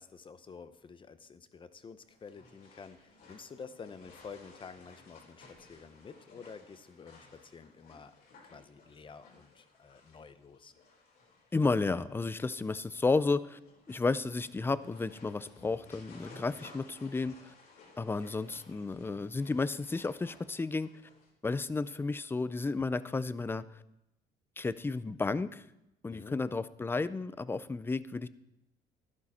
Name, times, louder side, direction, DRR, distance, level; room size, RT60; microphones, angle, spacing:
voice 1, 0.0-8.1 8.5-10.7 26.1-26.4, left 5 dB, 30° left, 12 dB, 0.8 m, -50 dB
sound 1, 2.0-21.3, left 3 dB, 65° left, 4.1 m, -58 dB
voice 2, 11.5-13.6 13.9-17.5 18.0-20.9 21.4-23.6 24.6-25.6 26.0-28.3, left 3 dB, 15° left, 16 dB, 0.4 m, -32 dB
12.0 x 11.0 x 4.3 m, 0.87 s
cardioid pair, 110°, 17 cm